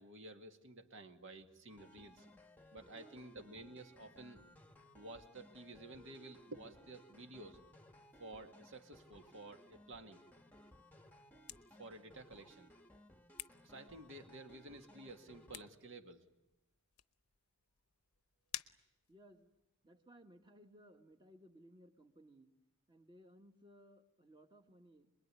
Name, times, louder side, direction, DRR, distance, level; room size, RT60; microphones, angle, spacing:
voice 1, 0.0-2.3 2.7-4.4 4.9-7.6 8.2-10.2 11.8-12.7 13.6-16.3, right 2 dB, 60° right, 5 dB, 2.1 m, -52 dB
sound 1, 1.7-15.7, left 1 dB, 10° left, 1.2 m, -62 dB
voice 2, 2.9-3.4 19.1-19.5 19.8-22.5 22.9-25.1, equal, 20° right, 5 dB, 1.7 m, -62 dB
sound 2, 11.0-19.7, left 13 dB, 75° left, 0.9 m, -55 dB
27.0 x 21.5 x 9.8 m, 0.93 s
head